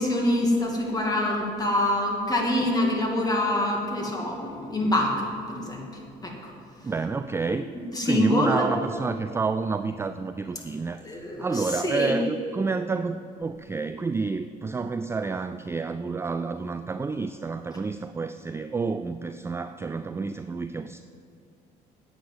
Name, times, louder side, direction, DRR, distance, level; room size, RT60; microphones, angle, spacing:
voice 1, 0.0-6.5 7.9-8.7 11.0-12.2, left 1 dB, 20° left, 0 dB, 2.5 m, -25 dB
voice 2, 6.8-7.7 8.0-21.0, right 4 dB, 15° right, 10 dB, 0.3 m, -29 dB
10.0 x 8.6 x 8.1 m, 2.5 s
cardioid pair, 110°, 17 cm